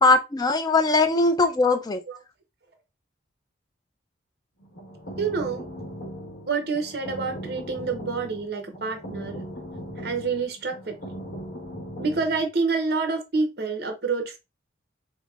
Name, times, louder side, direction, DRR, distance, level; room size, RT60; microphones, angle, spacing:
voice 1, 0.0-2.0, left 3 dB, 20° left, 0.4 m, -20 dB
sound 1, 4.6-12.4, equal, 70° left, 1.0 m, -38 dB
voice 2, 5.2-5.6 6.5-9.4 10.0-11.0 12.0-14.4, right 4 dB, 55° right, 0.7 m, -27 dB
5.1 x 2.0 x 2.3 m
head